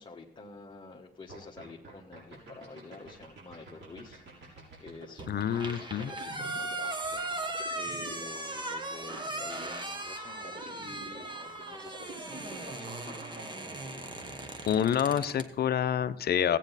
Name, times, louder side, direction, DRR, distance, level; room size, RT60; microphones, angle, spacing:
voice 1, 0.0-13.3, left 3 dB, 25° left, -2 dB, 1.1 m, -49 dB
sound 1, 1.3-13.4, right 3 dB, 60° right, 5.6 m, -48 dB
sound 2, 5.2-15.5, right 2 dB, 25° right, 1.3 m, -38 dB
voice 2, 5.3-6.1 14.7-16.6, left 9 dB, 55° left, 14 dB, 0.6 m, -27 dB
sound 3, 6.4-8.8, right 2 dB, 80° right, 3.4 m, -61 dB
14.5 x 9.0 x 4.1 m, 0.80 s
cardioid pair, 90°, 20 cm